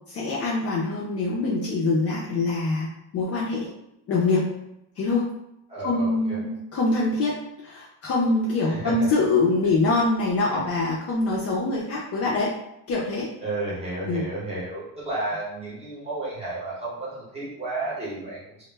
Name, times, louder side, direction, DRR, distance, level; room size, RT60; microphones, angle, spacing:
voice 1, 0.1-3.7 4.1-4.5 5.0-5.3 5.8-12.5 12.9-13.3 14.0-14.3, left 3 dB, 40° left, -5 dB, 0.4 m, -24 dB
voice 2, 5.7-6.4 8.6-9.1 10.5-10.6 13.4-18.7, right 2 dB, 15° right, -7 dB, 0.7 m, -32 dB
2.1 x 2.1 x 3.2 m, 0.82 s
cardioid pair, 160°, 40 cm